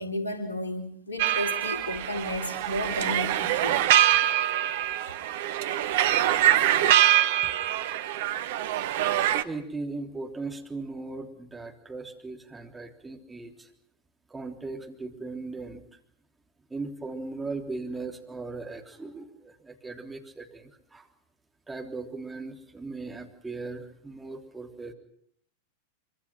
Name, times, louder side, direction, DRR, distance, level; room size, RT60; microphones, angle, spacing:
voice 1, 0.0-3.8 4.1-4.3, left 1 dB, 75° left, 5 dB, 3.9 m, -33 dB
sound 1, 1.2-9.4, right 12 dB, 55° right, 1.1 m, -24 dB
voice 2, 9.4-13.7 14.3-15.8 16.7-21.1 21.7-24.9, right 3 dB, 10° right, 1 dB, 3.4 m, -38 dB
25.5 x 25.0 x 6.0 m, 0.68 s
figure-of-eight pair, 90°, 0 cm